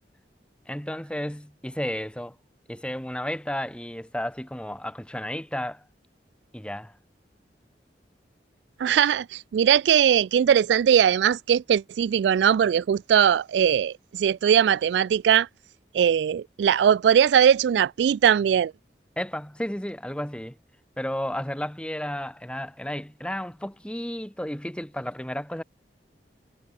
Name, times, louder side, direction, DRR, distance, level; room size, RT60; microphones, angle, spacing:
voice 1, 0.7-2.3 2.7-5.8 6.5-6.9 19.2-20.6 21.0-25.6, left 1 dB, 5° left, 1.3 m, -32 dB
voice 2, 8.8-15.5 15.9-18.7, right 8 dB, 80° right, 0.3 m, -20 dB
head